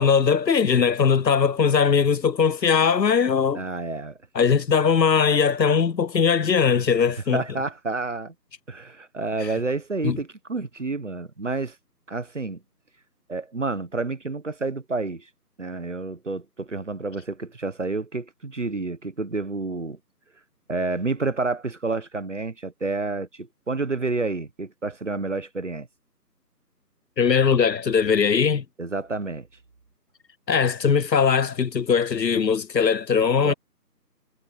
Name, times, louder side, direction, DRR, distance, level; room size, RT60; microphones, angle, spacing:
voice 1, 0.0-3.6 4.3-7.4 10.0-10.2 27.2-28.6 30.5-33.5, left 6 dB, 85° left, 0.7 m, -20 dB
voice 2, 3.5-4.2 7.3-8.3 8.7-11.8 12.1-12.6 13.3-15.3 15.6-20.0 20.7-25.9 28.8-29.5 33.4-33.5, right 3 dB, 45° right, 1.3 m, -29 dB
figure-of-eight pair, 160°, 49 cm